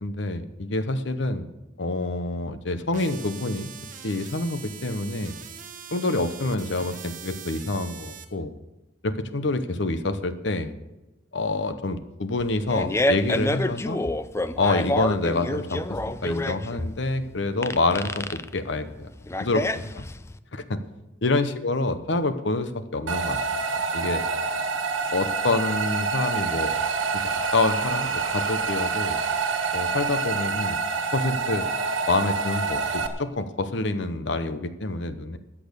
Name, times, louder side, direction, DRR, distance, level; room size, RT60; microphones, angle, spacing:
voice 1, 0.0-1.5 1.8-3.7 4.0-5.3 5.9-8.5 9.0-10.7 11.3-14.0 14.6-15.8 16.2-19.1 19.4-19.6 20.5-20.8 21.2-23.4 23.9-24.2 25.1-26.7 27.1-29.2 29.7-30.8 31.1-31.7 32.1-35.4, left 2 dB, 65° left, 11 dB, 0.8 m, -27 dB
sound 1, 2.9-8.2, right 8 dB, 45° right, 1.3 m, -42 dB
Fart, 12.4-20.4, left 1 dB, 15° left, 0.4 m, -28 dB
sound 2, 23.1-33.1, right 4 dB, 80° right, 1.5 m, -27 dB
13.5 x 8.6 x 6.6 m, 1.0 s
head